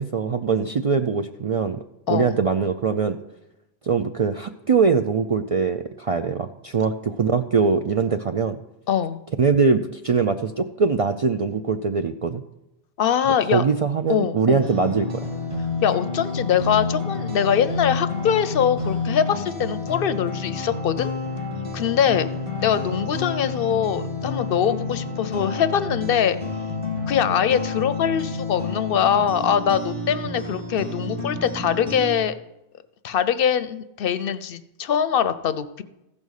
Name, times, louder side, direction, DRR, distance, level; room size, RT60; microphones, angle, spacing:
voice 1, 0.0-1.8 2.1-3.2 3.8-8.6 9.4-12.4 13.5-15.2, right 5 dB, 55° right, 7 dB, 0.4 m, -22 dB
voice 2, 8.9-9.2 13.0-13.6 14.1-14.6 15.8-21.1 21.7-22.3 22.6-26.4 27.1-32.3 33.0-35.8, left 8 dB, 65° left, 13 dB, 0.7 m, -23 dB
sound 1, 14.6-32.2, left 3 dB, 30° right, 1.8 m, -29 dB
15.0 x 5.3 x 6.4 m, 0.92 s
omnidirectional pair, 1.1 m